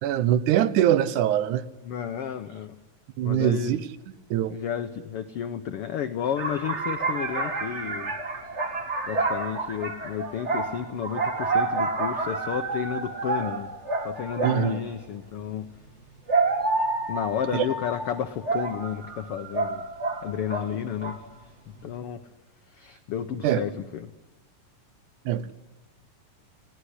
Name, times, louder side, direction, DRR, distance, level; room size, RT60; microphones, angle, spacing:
voice 1, 0.0-1.6 3.2-3.8 4.3-4.6 14.4-14.8 17.5-17.7 23.4-23.6 25.3-25.5, right 11 dB, 75° right, 15 dB, 2.3 m, -23 dB
voice 2, 1.8-2.8 3.2-3.7 4.4-8.2 9.0-13.7 14.0-15.7 17.1-19.8 20.2-21.5 21.8-22.2 22.7-24.1, left 9 dB, 80° left, 8 dB, 1.3 m, -32 dB
sound 1, 6.4-14.8 15.9-20.7 21.0-21.4, right 3 dB, 25° right, 1.9 m, -29 dB
19.5 x 17.5 x 9.9 m, 1.1 s
omnidirectional pair, 3.8 m